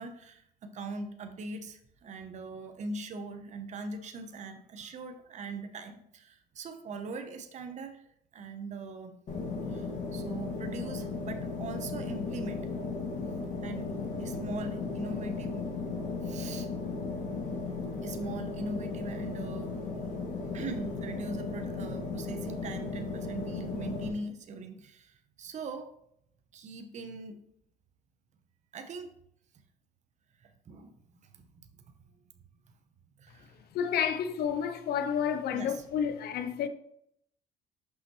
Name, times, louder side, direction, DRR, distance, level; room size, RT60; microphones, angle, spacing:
voice 1, 0.0-8.1 8.3-9.1 9.7-12.7 13.6-13.9 14.2-15.6 16.2-16.7 18.0-19.8 20.5-25.9 26.5-27.4 28.7-29.1 30.4-31.8 33.2-33.7 35.5-35.9, right 3 dB, 45° right, 0.8 m, -41 dB
sound 1, 9.3-24.1, left 4 dB, 45° left, 1.8 m, -36 dB
voice 2, 33.7-36.7, left 8 dB, 70° left, 0.6 m, -30 dB
5.8 x 5.6 x 3.1 m
cardioid pair, 110°, 17 cm